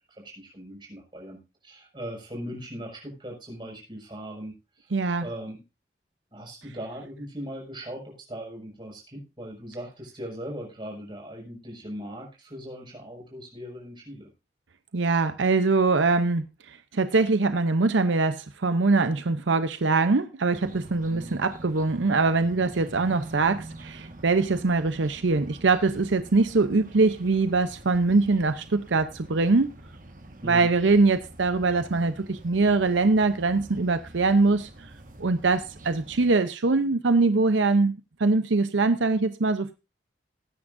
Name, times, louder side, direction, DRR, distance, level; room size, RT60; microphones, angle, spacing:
voice 1, 0.1-4.9 5.2-5.6 6.3-14.3 21.1-21.4 30.4-30.7, equal, 25° right, 5.9 m, -39 dB
voice 2, 4.9-5.3 14.9-29.7 30.4-34.7 35.2-37.9 38.2-39.7, right 3 dB, 80° right, 0.7 m, -23 dB
sound 1, 20.5-36.3, right 1 dB, 45° right, 1.5 m, -46 dB
19.5 x 9.7 x 2.6 m
head